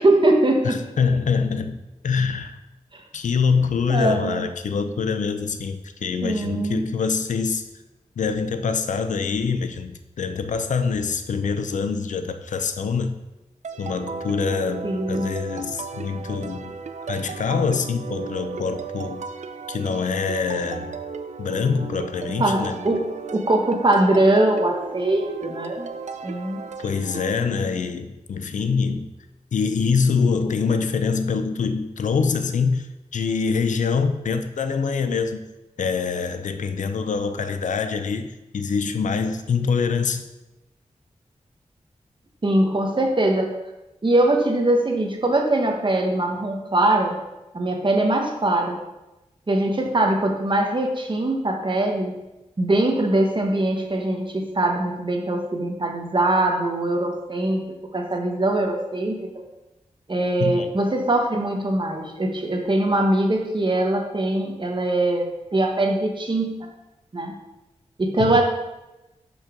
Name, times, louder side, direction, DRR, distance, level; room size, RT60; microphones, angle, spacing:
voice 1, 0.0-0.8 2.9-3.0 3.9-4.5 6.2-6.9 14.8-15.3 22.4-23.1 23.3-25.9 26.2-26.6 42.4-43.5 44.0-47.2 47.5-48.8 49.5-52.1 52.6-57.6 57.9-59.3 60.1-66.5 67.1-67.3 68.0-68.4, right 1 dB, 40° right, 2 dB, 1.2 m, -22 dB
voice 2, 0.6-1.8 2.0-2.6 3.1-7.6 8.2-13.1 13.8-16.7 17.1-19.2 19.7-21.0 21.4-22.8 26.8-29.1 29.5-32.9 33.1-35.4 35.8-40.3 60.4-60.7 68.2-68.4, left 5 dB, 85° left, 9 dB, 0.5 m, -24 dB
sound 1, 13.6-27.4, right 5 dB, 70° right, 0.4 m, -35 dB
6.7 x 5.4 x 3.7 m, 0.99 s
cardioid pair, 55°, 12 cm